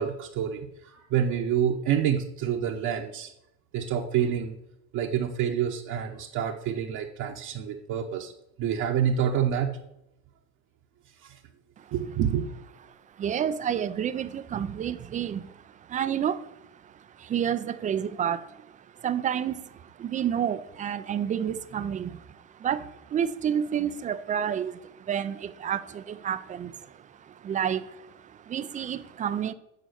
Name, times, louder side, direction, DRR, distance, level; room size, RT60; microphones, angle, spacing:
voice 1, 0.0-3.3 3.7-4.5 4.9-8.3 8.6-9.7 11.2-11.4 11.9-12.4, right 8 dB, 45° right, 1 dB, 1.0 m, -27 dB
voice 2, 13.2-16.5 16.8-18.7 19.0-29.5, right 9 dB, 20° right, 13 dB, 0.4 m, -30 dB
9.3 x 4.1 x 6.4 m, 0.82 s
supercardioid pair, 110°, 42 cm